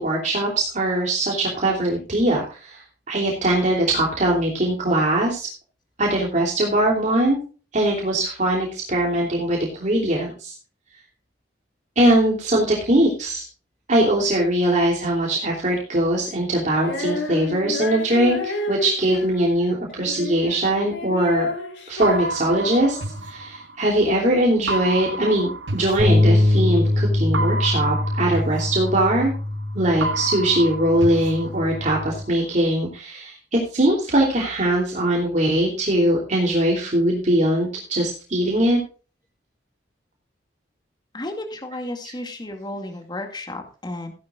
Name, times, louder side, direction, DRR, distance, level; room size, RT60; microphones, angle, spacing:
voice 1, 0.0-5.5 6.0-7.4 7.7-10.5 12.0-13.4 13.9-21.5 21.9-29.3 29.7-38.8, right 1 dB, 45° right, -2 dB, 3.0 m, -21 dB
Female singing, 16.8-23.2, left 2 dB, 85° left, 3.6 m, -31 dB
sound 1, 22.0-24.1 24.7-26.7 27.3-29.6 30.0-32.1, right 2 dB, 90° right, 1.1 m, -30 dB
sound 2, 26.0-32.2, left 1 dB, 30° right, 4.5 m, -23 dB
voice 2, 41.1-44.1, left 1 dB, 25° left, 4 dB, 2.1 m, -33 dB
15.5 x 11.5 x 2.4 m, 0.36 s
head